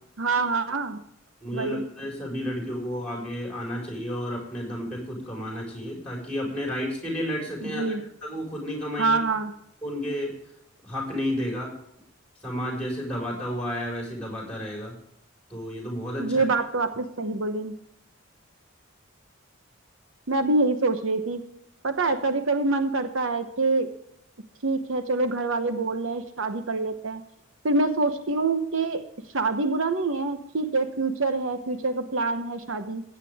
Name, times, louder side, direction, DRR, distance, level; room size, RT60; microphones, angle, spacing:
voice 1, 0.2-1.0 1.5-1.8 7.6-8.0 9.0-9.5 16.2-17.7 20.3-21.4 21.8-23.9 24.6-27.2 27.6-29.0 29.3-33.0, right 3 dB, 75° right, 9 dB, 1.0 m, -25 dB
voice 2, 1.4-7.9 8.2-9.2 9.8-10.3 10.8-11.7 12.4-14.9 15.5-16.4, equal, 5° left, -1 dB, 5.0 m, -31 dB
15.5 x 9.1 x 3.5 m, 0.76 s
head